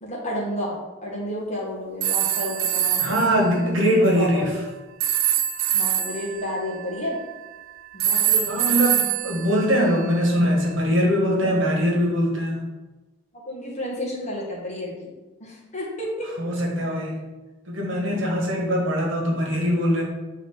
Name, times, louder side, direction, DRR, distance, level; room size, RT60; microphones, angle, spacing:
voice 1, 0.0-3.0 3.9-4.5 5.7-7.2 7.9-8.5 13.3-15.1 15.4-16.3 18.6-18.7, left 1 dB, 35° left, -5 dB, 1.5 m, -31 dB
sound 1, 2.0-3.3 5.0-7.5 8.0-10.3, right 9 dB, 85° right, 0.4 m, -24 dB
voice 2, 3.0-4.6 8.5-12.6 16.4-17.2 17.7-20.0, equal, 70° right, -2 dB, 1.4 m, -22 dB
7.3 x 3.7 x 3.6 m, 1.2 s
head